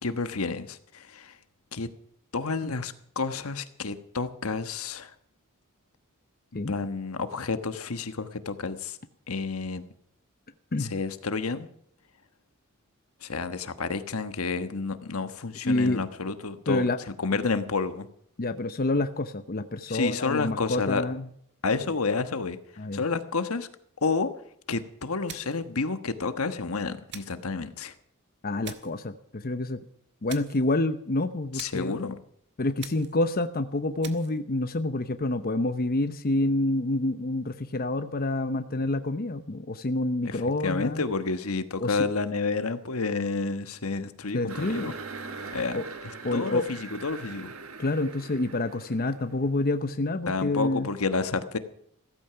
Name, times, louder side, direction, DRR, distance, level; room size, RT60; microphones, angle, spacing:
voice 1, 0.0-1.3 1.7-1.9 2.3-5.1 6.5-9.0 9.3-9.8 10.8-11.7 13.2-16.8 17.2-18.1 19.9-21.0 21.6-22.6 22.9-23.7 24.0-24.3 24.7-27.9 31.5-32.2 40.2-44.9 45.5-47.5 50.3-51.6, left 4 dB, 80° left, 10 dB, 1.3 m, -30 dB
voice 2, 15.6-16.0 16.7-17.0 18.4-21.3 22.8-23.0 28.4-29.8 30.2-31.9 32.6-41.0 41.8-42.0 44.3-44.9 45.7-45.8 46.2-46.6 47.8-50.9, left 2 dB, 45° left, 9 dB, 0.8 m, -28 dB
sound 1, 25.3-25.7 27.1-27.5 28.6-29.0 30.3-30.7 31.6-31.9 32.8-33.2 34.0-34.4, right 9 dB, 55° right, 1.6 m, -44 dB
sound 2, 44.5-49.8, right 4 dB, 70° right, 1.7 m, -41 dB
16.0 x 14.0 x 5.8 m, 0.67 s
head